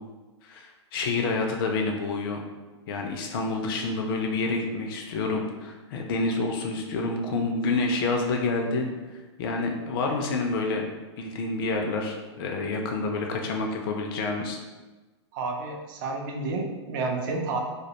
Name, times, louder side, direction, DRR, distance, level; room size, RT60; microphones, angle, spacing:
voice 1, 0.4-2.4 2.9-8.9 9.4-10.9 11.2-14.6, left 3 dB, 50° left, 2 dB, 0.4 m, -28 dB
voice 2, 15.3-17.6, right 3 dB, 45° right, 1 dB, 0.5 m, -30 dB
2.1 x 2.0 x 2.8 m, 1.2 s
hypercardioid pair, 110°, 15 cm